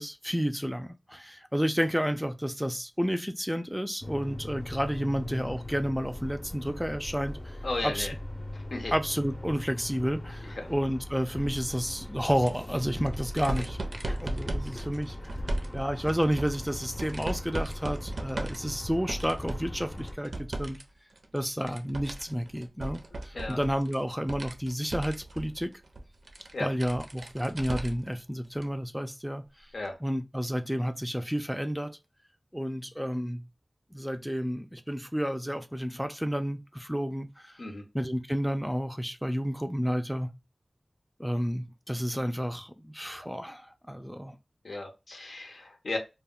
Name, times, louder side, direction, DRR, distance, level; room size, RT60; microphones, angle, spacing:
voice 1, 0.0-7.6 7.8-8.1 8.9-13.8 14.1-15.2 15.7-20.8 21.3-25.7 26.6-29.4 30.0-32.0 32.5-33.4 33.9-37.6 37.9-40.3 41.2-44.4, equal, ahead, 0.3 m, -31 dB
sound 1, 4.0-20.1, left 1 dB, 40° left, 0.6 m, -40 dB
voice 2, 7.6-8.1 8.5-8.9 10.4-10.7 23.1-23.6 26.5-26.7 29.7-30.0 37.6-37.8 44.6-46.0, left 2 dB, 90° left, 0.7 m, -35 dB
sound 2, 12.3-20.8 21.1-28.1 28.5-28.6 29.9-30.0, right 2 dB, 85° right, 0.4 m, -38 dB
2.2 x 2.1 x 3.6 m
wide cardioid pair, 55°, 0 cm